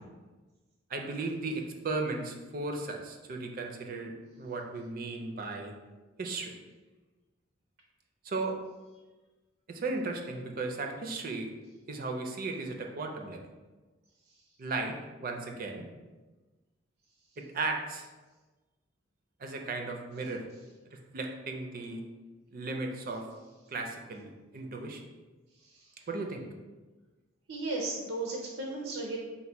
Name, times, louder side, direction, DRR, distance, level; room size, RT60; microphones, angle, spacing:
voice 1, 0.9-5.7 6.2-6.5 8.2-8.6 9.7-11.5 11.9-13.4 14.6-15.9 17.4-18.1 19.4-20.4 21.1-22.0 22.5-23.3 23.7-25.0 26.1-26.4, right 3 dB, 45° right, 3 dB, 0.4 m, -36 dB
voice 2, 27.5-29.2, right 2 dB, 90° right, -1 dB, 0.6 m, -35 dB
4.0 x 2.1 x 4.4 m, 1.2 s
head